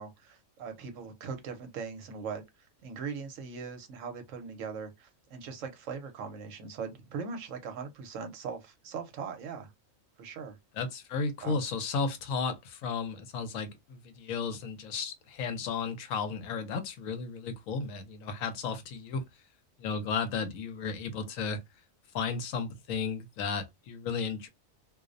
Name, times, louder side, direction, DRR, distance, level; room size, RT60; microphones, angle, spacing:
voice 1, 0.0-2.4 2.8-9.7 10.2-10.6 11.4-11.6, right 5 dB, 70° right, 1.0 m, -40 dB
voice 2, 10.8-19.2 19.8-21.6 22.1-24.5, left 5 dB, 80° left, 1.0 m, -34 dB
2.5 x 2.0 x 2.4 m
omnidirectional pair, 1.4 m